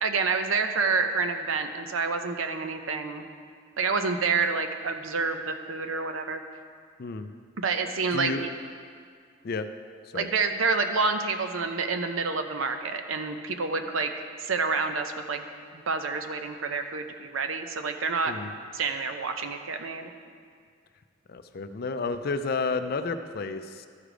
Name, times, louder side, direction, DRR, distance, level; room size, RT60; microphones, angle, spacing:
voice 1, 0.0-3.2 3.8-6.4 7.6-8.3 10.1-14.1 14.4-15.5 15.9-18.3 18.7-20.1, right 4 dB, 85° right, 7 dB, 0.7 m, -28 dB
voice 2, 7.0-7.3 8.1-8.4 9.4-9.7 10.1-10.3 18.3-18.5 21.3-23.9, left 4 dB, 50° left, 9 dB, 0.4 m, -31 dB
13.0 x 4.9 x 5.0 m, 2.1 s
head